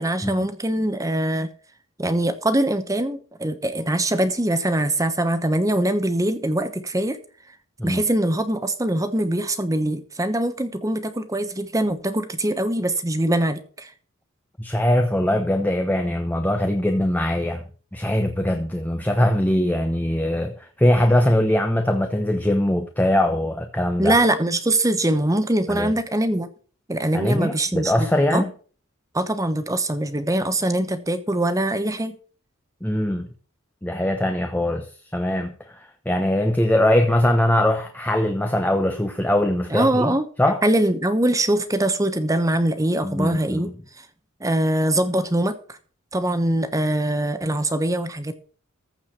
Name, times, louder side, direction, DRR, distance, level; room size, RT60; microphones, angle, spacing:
voice 1, 0.0-1.5 2.0-7.2 7.8-13.9 24.0-26.5 26.9-28.4 29.1-32.2 39.7-40.2 40.6-43.7 44.4-45.6 46.1-48.3, right 1 dB, 15° right, 1.1 m, -22 dB
voice 2, 14.6-17.6 17.9-24.2 25.7-25.9 27.1-28.5 32.8-33.3 33.8-34.9 35.1-40.6 43.0-43.7, left 1 dB, 10° left, 0.9 m, -21 dB
14.5 x 4.9 x 7.4 m
head